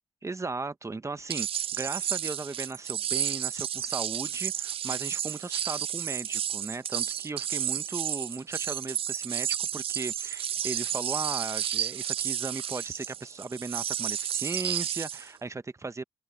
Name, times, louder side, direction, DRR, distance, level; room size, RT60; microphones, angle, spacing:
voice 1, 0.2-16.0, right 3 dB, 25° right, 1.5 m, -37 dB
sound 1, 1.3-15.3, right 10 dB, 50° right, 0.4 m, -32 dB
open air
hypercardioid pair, 45°, 12 cm